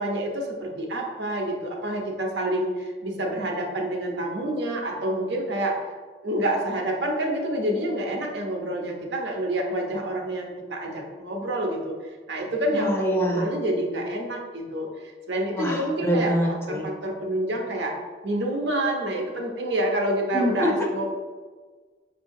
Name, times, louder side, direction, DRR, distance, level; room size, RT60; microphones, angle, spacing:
voice 1, 0.0-5.8 6.2-14.9 15.3-16.3 16.7-18.0 18.2-21.0, right 1 dB, 80° right, 1 dB, 0.7 m, -27 dB
voice 2, 12.7-13.5 15.5-16.8 20.3-20.7, left 1 dB, 15° left, 0 dB, 0.4 m, -25 dB
5.2 x 2.7 x 2.6 m, 1.4 s
head